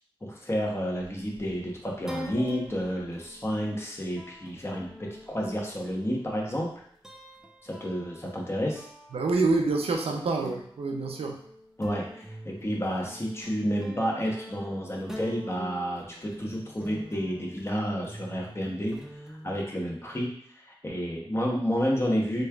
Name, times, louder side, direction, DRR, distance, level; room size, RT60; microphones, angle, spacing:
voice 1, 0.2-4.9 5.3-6.7 7.6-8.8 11.8-18.9 19.3-22.4, equal, 25° left, -2 dB, 0.8 m, -30 dB
sound 1, 0.7-6.6 7.0-19.6, equal, 5° right, 0.5 m, -45 dB
voice 2, 9.1-11.4, right 3 dB, 80° right, 2 dB, 0.5 m, -27 dB
3.3 x 3.1 x 2.3 m, 0.63 s
wide cardioid pair, 65°, 10 cm